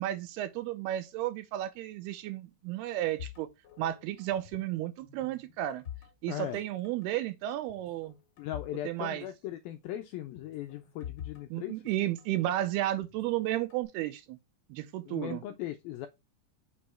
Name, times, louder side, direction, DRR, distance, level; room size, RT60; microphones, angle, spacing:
voice 1, 0.0-3.5 3.8-5.8 6.2-8.2 8.9-9.3 11.5-14.4 14.7-15.4, right 13 dB, 80° right, 2.5 m, -33 dB
sound 1, 3.2-4.7 5.0-6.6 6.8-7.1 7.7-8.8 9.1-9.2 10.4-12.4 13.0-13.8, left 10 dB, 35° left, 2.0 m, -46 dB
voice 2, 6.3-6.6 8.4-11.8 15.1-16.1, left 12 dB, 90° left, 2.1 m, -38 dB
6.2 x 4.6 x 4.3 m
omnidirectional pair, 4.8 m